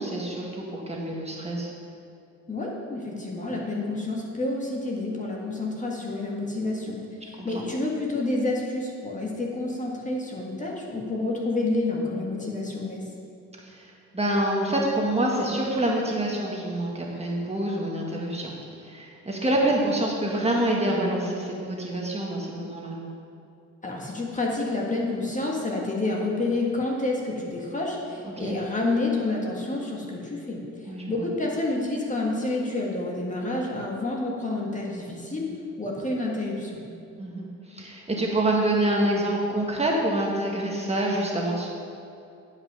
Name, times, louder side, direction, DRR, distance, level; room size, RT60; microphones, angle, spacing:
voice 1, 0.0-1.7 7.4-7.6 13.7-13.9 14.1-18.5 18.9-23.0 28.4-28.6 30.9-31.1 37.2-41.7, right 1 dB, 20° right, -2 dB, 1.6 m, -26 dB
voice 2, 2.5-13.0 23.8-35.5 35.8-36.8, left 2 dB, 25° left, -2 dB, 1.7 m, -29 dB
10.5 x 5.7 x 5.6 m, 2.6 s
cardioid pair, 90°, 30 cm